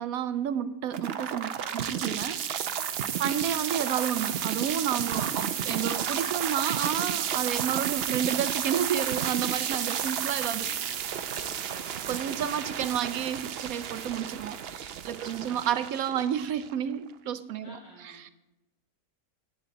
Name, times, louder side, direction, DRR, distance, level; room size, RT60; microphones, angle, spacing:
voice 1, 0.0-2.9 3.2-10.7 12.1-17.8 18.2-18.3, right 9 dB, 75° right, 12 dB, 1.0 m, -31 dB
sound 1, 0.9-16.9, right 8 dB, 55° right, 0.7 m, -32 dB
voice 2, 1.5-3.3 9.6-10.9 11.4-12.6 15.0-15.7 17.3-18.3, equal, 60° left, -4 dB, 5.9 m, -53 dB
16.5 x 8.4 x 4.0 m, 0.97 s
omnidirectional pair, 1.6 m